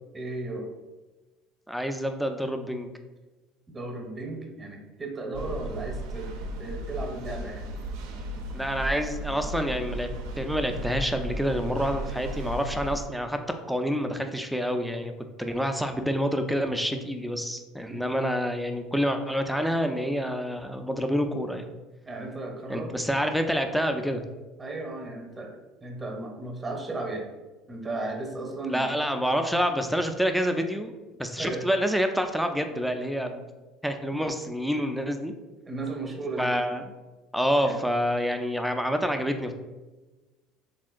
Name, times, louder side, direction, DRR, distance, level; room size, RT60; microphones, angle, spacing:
voice 1, 0.1-0.7 3.7-6.3 6.6-7.7 17.9-18.1 22.1-22.9 24.6-27.3 27.7-28.9 31.4-31.6 34.1-34.3 35.7-36.5 37.6-37.8, right 2 dB, 20° right, 1 dB, 0.7 m, -35 dB
voice 2, 1.7-2.9 8.5-13.4 13.7-15.1 15.4-21.7 22.7-24.2 28.7-30.9 31.2-33.4 33.8-35.3 36.4-36.8 37.3-39.5, equal, ahead, 5 dB, 0.3 m, -27 dB
sound 1, 5.3-13.1, right 1 dB, 75° right, 0.4 m, -35 dB
3.5 x 2.5 x 2.3 m, 1.2 s
supercardioid pair, 90°, 0 cm